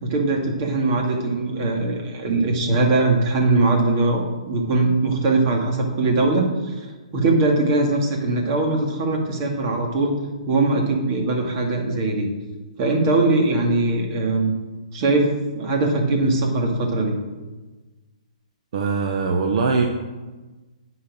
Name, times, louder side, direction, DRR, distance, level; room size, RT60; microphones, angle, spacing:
voice 1, 0.0-6.9 7.1-10.1 10.5-12.3 12.8-14.5 14.9-15.3 15.6-17.2, right 2 dB, 35° right, 0 dB, 2.2 m, -21 dB
voice 2, 18.7-19.9, right 4 dB, 55° right, 2 dB, 1.1 m, -21 dB
10.0 x 4.7 x 7.4 m, 1.2 s
hypercardioid pair, 145°, 4 cm